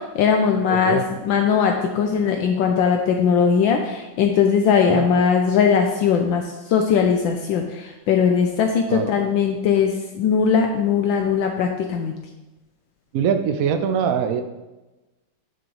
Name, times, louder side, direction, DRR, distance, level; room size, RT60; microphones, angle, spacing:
voice 1, 0.0-6.4 6.7-12.2, left 6 dB, 75° left, 3 dB, 1.3 m, -20 dB
voice 2, 13.1-14.4, right 7 dB, 80° right, 7 dB, 0.7 m, -22 dB
10.0 x 6.2 x 3.1 m, 1.1 s
omnidirectional pair, 2.3 m